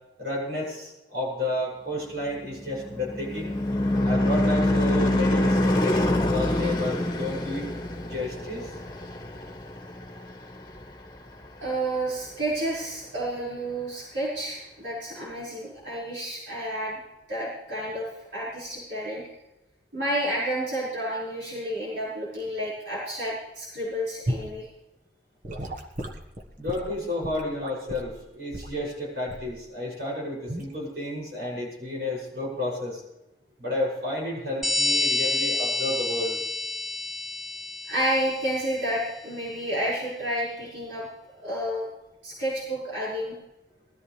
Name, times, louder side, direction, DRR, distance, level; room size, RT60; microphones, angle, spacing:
voice 1, 0.2-3.5 4.0-7.7 8.1-8.7 26.6-33.0 33.6-36.4, left 1 dB, 65° right, -5 dB, 6.9 m, -31 dB
Car passing by / Truck / Engine, 2.4-11.1, left 1 dB, 25° left, 1.5 m, -26 dB
voice 2, 11.6-17.0 17.3-19.2 19.9-24.7 37.9-41.9 42.2-43.4, right 1 dB, 85° right, -7 dB, 5.4 m, -30 dB
Gurgling / Sink (filling or washing) / Liquid, 24.3-24.5 25.4-28.1 28.5-28.8 29.3-29.6 30.5-30.7, equal, 45° right, 1.4 m, -34 dB
sound 1, 34.6-38.9, left 2 dB, ahead, 0.7 m, -28 dB
21.0 x 14.0 x 3.4 m, 0.96 s
head